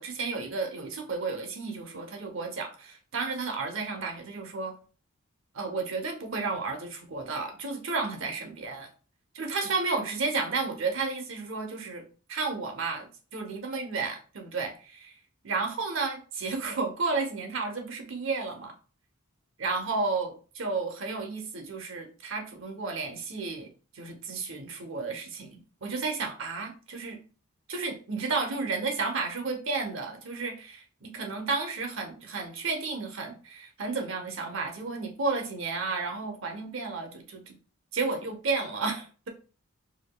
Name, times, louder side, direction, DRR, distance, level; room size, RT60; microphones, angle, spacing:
voice 1, 0.0-4.7 5.5-8.9 9.3-15.1 15.4-18.7 19.6-27.2 27.7-37.6 37.9-39.3, right 4 dB, 60° right, 4 dB, 0.8 m, -32 dB
4.9 x 2.8 x 2.2 m, 0.37 s
head